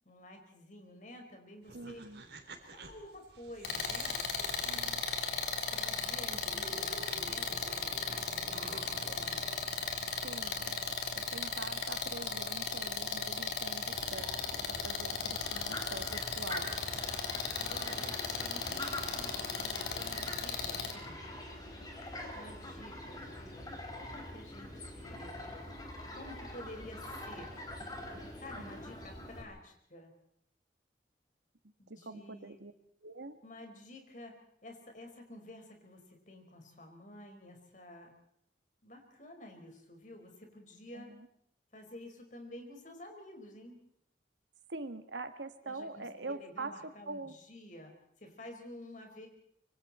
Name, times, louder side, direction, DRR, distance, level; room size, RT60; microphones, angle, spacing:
voice 1, 0.1-2.0 2.7-4.8 5.7-9.5 17.5-21.2 22.3-25.4 26.1-27.5 28.4-30.1 31.8-32.6 33.4-38.1 38.8-41.2 41.7-43.8 45.6-47.9 48.2-49.3, left 1 dB, 45° left, 3 dB, 5.2 m, -51 dB
sound 1, 1.6-5.7 6.1-6.2 6.4-10.6, right 3 dB, 65° right, 3.9 m, -51 dB
voice 2, 1.7-2.2 4.7-5.0 10.2-16.8 28.6-28.7 31.9-32.7 33.0-33.4 40.9-41.3 44.7-47.4, right 3 dB, 85° right, 9 dB, 1.7 m, -44 dB
sound 2, 3.6-20.9, left 5 dB, 65° left, 3.5 m, -36 dB
Fowl, 13.9-29.4, left 1 dB, 20° left, 4.6 m, -44 dB
26.0 x 24.0 x 4.4 m, 0.69 s
head